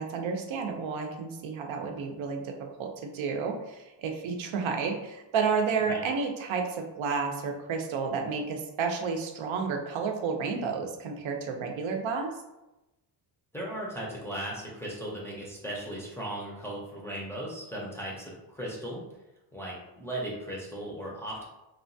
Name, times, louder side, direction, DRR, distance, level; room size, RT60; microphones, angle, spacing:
voice 1, 0.0-2.5 2.8-12.3, right 5 dB, 85° right, 3 dB, 0.6 m, -31 dB
voice 2, 13.5-19.0 19.5-21.4, right 1 dB, 5° left, -6 dB, 0.4 m, -37 dB
3.0 x 2.2 x 2.6 m, 0.96 s
wide cardioid pair, 170°, 46 cm